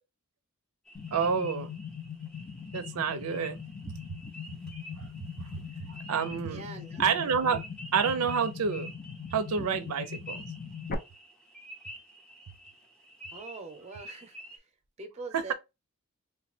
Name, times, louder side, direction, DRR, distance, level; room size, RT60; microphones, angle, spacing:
sound 1, 0.9-10.9, left 6 dB, 40° left, 0.6 m, -41 dB
sound 2, 0.9-14.6, equal, 5° left, 0.7 m, -49 dB
voice 1, 1.1-1.7 2.7-3.6 5.0-5.1 5.4-5.5 5.9-6.6 7.0-7.6 7.9-8.9 9.3-10.4 15.3-15.5, right 6 dB, 85° right, 0.5 m, -28 dB
voice 2, 6.4-7.0 13.3-14.6 15.0-15.5, right 3 dB, 30° right, 0.7 m, -43 dB
3.2 x 2.1 x 4.2 m
head